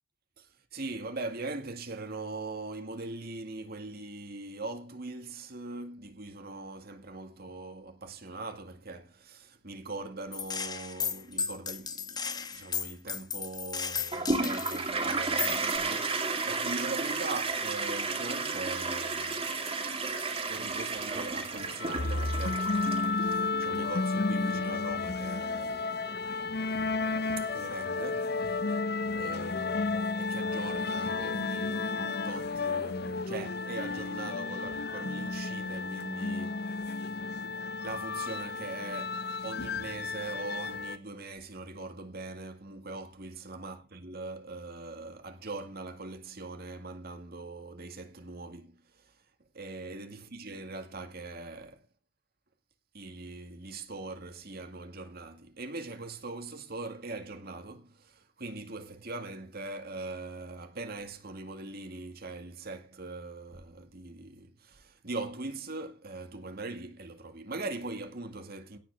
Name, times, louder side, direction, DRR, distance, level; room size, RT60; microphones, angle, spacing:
voice 1, 0.4-19.6 20.5-22.7 23.2-25.9 27.4-28.6 29.1-37.2 37.8-49.1 49.5-51.8 52.9-68.8, right 3 dB, 55° right, 2.1 m, -41 dB
Gunshot gunfire, 10.3-14.9 15.4-15.8, left 6 dB, 20° left, 1.0 m, -35 dB
Toilet flush, 14.1-23.3, right 3 dB, 30° right, 2.4 m, -32 dB
sound 1, 21.6-41.0, left 3 dB, 55° left, 0.8 m, -32 dB
17.5 x 6.0 x 6.9 m
head